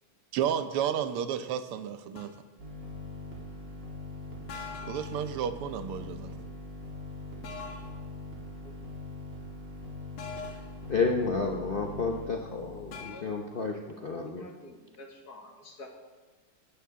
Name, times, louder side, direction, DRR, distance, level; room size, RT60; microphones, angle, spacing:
voice 1, 0.3-2.3 4.9-6.3, right 9 dB, 85° right, 11 dB, 1.7 m, -31 dB
sound 1, 2.2-2.4 4.5-5.3 7.4-8.0 10.2-10.8 12.9-13.2, left 5 dB, 90° left, 2.4 m, -42 dB
sound 2, 2.6-12.9, left 2 dB, 55° right, 3.0 m, -42 dB
voice 2, 10.9-14.4, left 4 dB, 65° left, 1 dB, 0.5 m, -31 dB
voice 3, 12.9-13.3 14.0-15.9, left 2 dB, 50° left, 2 dB, 2.2 m, -49 dB
17.0 x 13.0 x 3.7 m, 1.3 s
omnidirectional pair, 2.4 m